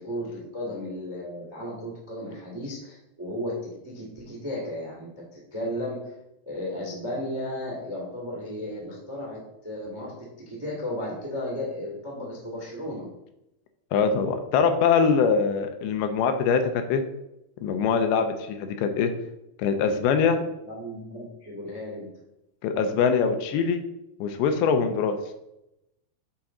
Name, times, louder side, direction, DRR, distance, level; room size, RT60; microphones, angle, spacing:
voice 1, 0.0-6.1 6.4-13.1 20.3-22.1, left 1 dB, 20° right, -4 dB, 0.6 m, -34 dB
voice 2, 13.9-17.0 17.6-19.1 19.6-20.4 22.6-23.8 24.2-25.2, left 6 dB, 80° left, 6 dB, 2.5 m, -23 dB
8.6 x 4.3 x 3.7 m, 0.86 s
omnidirectional pair, 4.6 m